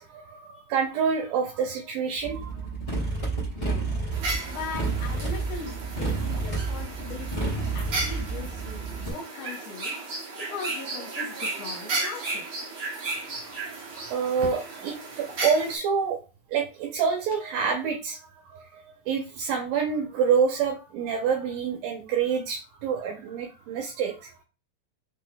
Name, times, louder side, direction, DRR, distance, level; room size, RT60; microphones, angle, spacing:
voice 1, 0.0-2.6 13.8-16.2 16.5-18.2 18.4-24.3, right 6 dB, 75° right, 1 dB, 2.4 m, -27 dB
Motorcycle, 2.2-9.1, right 3 dB, 20° left, 0.8 m, -30 dB
voice 2, 3.5-4.0 4.5-10.0 10.4-12.4, left 5 dB, 80° left, -1 dB, 1.5 m, -40 dB
sound 1, 4.1-15.8, right 3 dB, 50° right, 1.5 m, -34 dB
6.1 x 3.6 x 2.2 m, 0.31 s
omnidirectional pair, 4.3 m